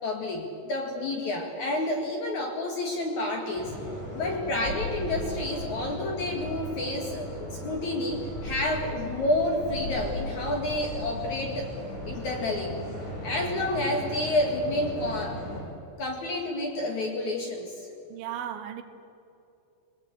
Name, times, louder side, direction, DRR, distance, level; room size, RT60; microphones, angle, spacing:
voice 1, 0.0-3.7 4.1-11.7 12.1-12.8 13.2-15.4 16.0-17.7, left 1 dB, 55° left, 2 dB, 2.4 m, -29 dB
sound 1, 3.5-15.6, equal, 75° left, 9.8 m, -36 dB
voice 2, 18.1-18.8, right 10 dB, 75° right, 8 dB, 3.5 m, -35 dB
21.5 x 20.0 x 8.1 m, 2.8 s
omnidirectional pair, 5.4 m